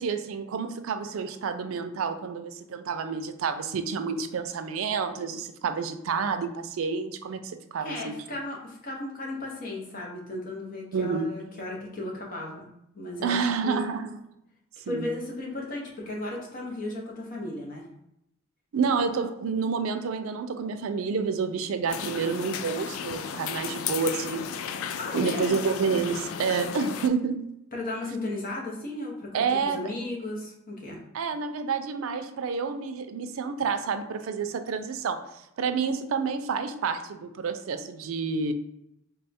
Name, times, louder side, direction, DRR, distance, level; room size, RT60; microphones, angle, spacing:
voice 1, 0.0-8.1 10.9-11.4 13.2-14.2 14.9-15.1 18.7-24.5 25.1-27.4 29.3-29.9 31.1-35.2 35.6-38.5, right 5 dB, 85° right, 8 dB, 0.4 m, -29 dB
voice 2, 7.8-12.7 12.9-13.9 14.9-17.9 24.9-25.6 27.7-31.0, left 2 dB, 45° left, -2 dB, 0.9 m, -35 dB
sound 1, 21.9-27.1, left 7 dB, 90° left, 0.3 m, -34 dB
3.4 x 2.3 x 4.1 m, 0.81 s
head